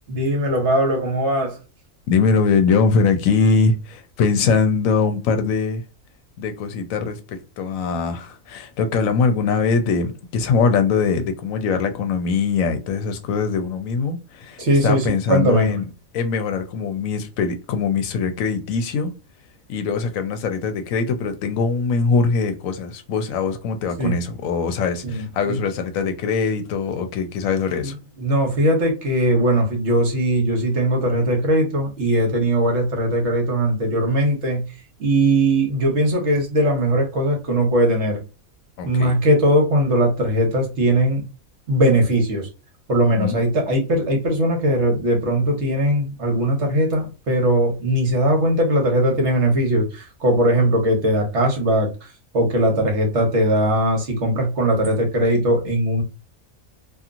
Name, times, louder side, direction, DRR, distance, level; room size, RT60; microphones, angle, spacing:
voice 1, 0.1-1.6 14.6-15.7 24.0-24.1 25.0-25.6 27.8-27.9 28.2-34.6 35.0-38.2 38.8-41.2 41.7-42.5 42.9-51.9 52.3-56.0, right 1 dB, 60° right, 1.2 m, -19 dB
voice 2, 2.1-5.8 6.4-15.9 16.1-19.1 19.7-27.9 38.8-39.1 43.1-43.3, left 5 dB, 75° left, 0.9 m, -22 dB
2.8 x 2.5 x 2.4 m
omnidirectional pair, 1.4 m